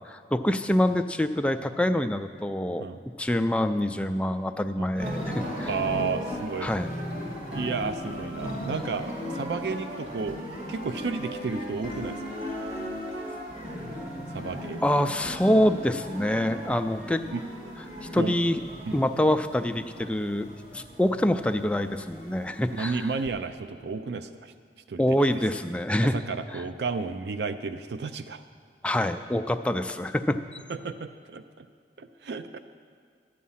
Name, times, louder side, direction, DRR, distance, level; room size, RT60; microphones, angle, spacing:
voice 1, 0.1-5.7 6.6-6.9 14.8-17.2 18.1-18.6 18.9-23.0 25.0-26.2 28.8-30.6, left 1 dB, 5° left, 8 dB, 0.3 m, -26 dB
sound 1, 4.9-23.3, equal, 40° right, 2.6 m, -37 dB
voice 2, 5.7-6.7 7.5-10.4 10.7-12.4 14.3-15.1 17.3-17.4 18.2-18.4 18.9-19.0 22.7-24.5 24.9-25.2 26.1-28.4 30.7-31.7 32.0-32.6, right 4 dB, 75° right, 10 dB, 0.4 m, -32 dB
12.0 x 8.4 x 5.6 m, 2.2 s
head